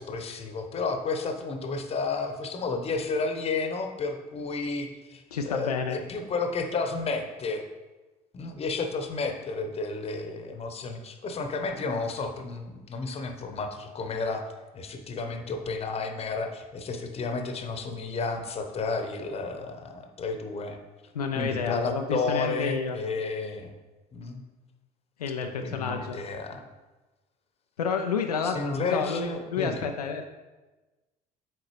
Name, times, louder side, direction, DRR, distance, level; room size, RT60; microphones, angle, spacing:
voice 1, 0.0-7.6 8.3-14.4 14.7-20.8 21.4-23.7 24.1-24.4 25.4-26.6 28.4-29.9, left 4 dB, 30° left, 5 dB, 1.0 m, -32 dB
voice 2, 5.3-6.0 21.1-23.0 25.2-26.2 27.8-30.2, left 5 dB, 80° left, 4 dB, 0.4 m, -30 dB
7.9 x 4.6 x 3.1 m, 1.2 s
figure-of-eight pair, 55°, 20 cm